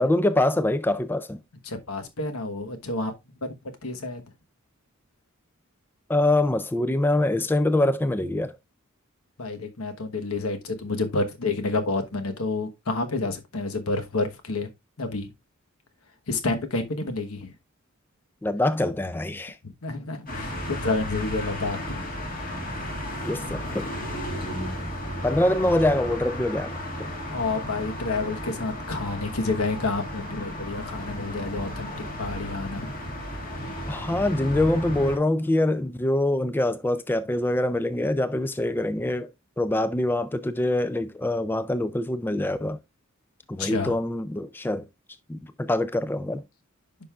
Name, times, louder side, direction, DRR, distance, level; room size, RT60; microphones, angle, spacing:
voice 1, 0.0-1.4 6.1-8.6 18.4-19.6 23.2-23.9 25.2-26.8 33.9-39.3 39.6-42.8 43.5-44.8 45.3-46.4, left 1 dB, 10° left, 0.3 m, -24 dB
voice 2, 1.6-3.1 3.8-4.2 9.4-14.7 15.0-15.3 16.3-17.5 19.6-22.1 27.3-31.9 32.2-32.9 33.7-33.9 43.6-44.0, left 3 dB, 85° left, 1.2 m, -29 dB
sound 1, 20.3-35.2, equal, 40° left, 2.0 m, -34 dB
10.0 x 5.3 x 2.4 m
head